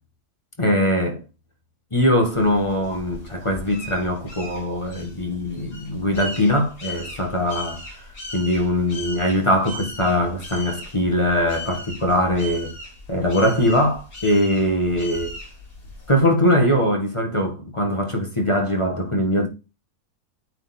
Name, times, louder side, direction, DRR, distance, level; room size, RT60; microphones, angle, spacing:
voice 1, 0.6-1.2 1.9-12.7 13.1-15.4 16.1-19.5, left 1 dB, 20° left, 1.2 m, -21 dB
sound 1, 2.2-16.2, left 1 dB, 70° left, 4.1 m, -38 dB
8.8 x 3.9 x 4.2 m
omnidirectional pair, 1.5 m